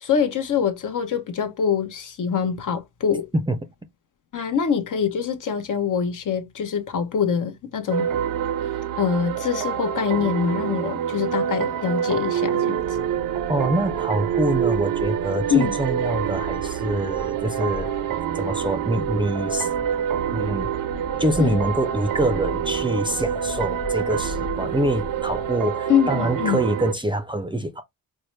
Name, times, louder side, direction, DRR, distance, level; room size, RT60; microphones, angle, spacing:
voice 1, 0.0-3.3 4.3-8.1 9.0-13.1 15.5-15.7 21.4-21.6 25.9-26.6, left 7 dB, 55° left, 0.8 m, -24 dB
sound 1, 7.9-26.9, right 9 dB, 60° right, 0.6 m, -26 dB
sound 2, 12.8-25.5, left 4 dB, 25° left, 0.9 m, -39 dB
voice 2, 13.5-17.9 18.3-19.7 20.3-20.7 21.2-27.8, right 1 dB, 15° right, 0.5 m, -25 dB
4.5 x 2.1 x 3.1 m
cardioid pair, 120°, 38 cm